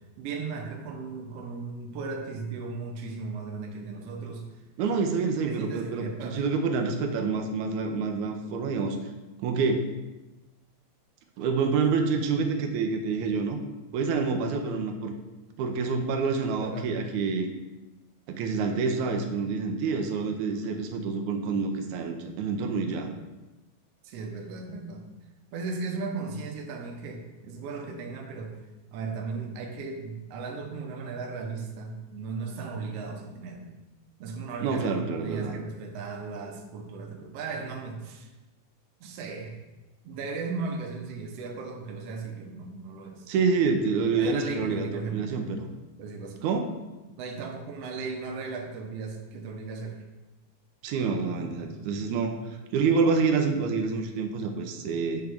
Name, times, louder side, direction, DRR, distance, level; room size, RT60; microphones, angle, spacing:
voice 1, 0.2-4.4 5.4-6.4 16.6-16.9 24.0-25.0 25.5-28.6 28.9-33.7 34.2-38.3 39.0-39.6 40.0-43.5 44.2-45.5 46.0-46.4 47.2-50.0, right 4 dB, 70° right, 1 dB, 1.7 m, -36 dB
voice 2, 4.8-9.0 9.4-9.9 11.4-13.6 13.9-15.1 15.6-17.5 18.3-23.1 34.6-35.6 43.3-45.7 46.4-46.7 50.8-55.2, right 4 dB, 85° right, 4 dB, 2.0 m, -27 dB
7.8 x 3.5 x 3.5 m, 1.1 s
omnidirectional pair, 3.3 m